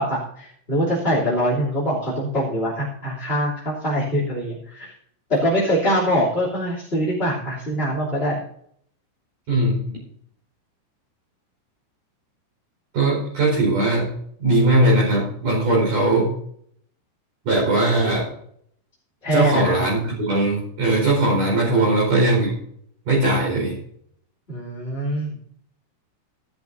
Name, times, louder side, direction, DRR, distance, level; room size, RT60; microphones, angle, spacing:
voice 1, 0.0-4.9 5.3-8.4 19.2-19.8 21.7-21.9 24.5-25.3, equal, 15° left, -6 dB, 2.3 m, -23 dB
voice 2, 9.5-9.8 12.9-14.1 14.4-16.3 17.4-18.3 19.3-22.6 23.1-23.8, right 2 dB, 40° right, -3 dB, 6.0 m, -19 dB
18.5 x 12.0 x 2.7 m, 0.67 s
omnidirectional pair, 5.8 m